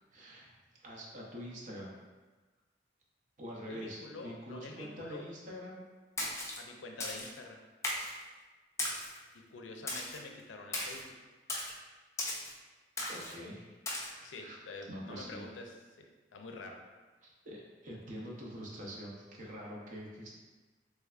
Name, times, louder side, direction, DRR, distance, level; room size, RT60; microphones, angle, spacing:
voice 1, 0.1-0.5 0.8-1.9 3.4-5.8 13.1-14.6 14.9-15.5 17.2-20.3, equal, 45° right, -3 dB, 0.6 m, -45 dB
voice 2, 3.7-5.2 6.6-7.6 9.3-11.1 14.2-16.8, left 3 dB, 90° left, 3 dB, 0.4 m, -47 dB
Splash splatter, 6.2-6.6 7.0-7.3 7.8-8.2 8.8-9.2 9.9-10.2 10.7-11.0 11.5-11.7 12.2-12.5 13.0-13.3 13.9-14.1, left 1 dB, 15° left, 0.4 m, -36 dB
3.2 x 3.2 x 2.4 m, 1.3 s
head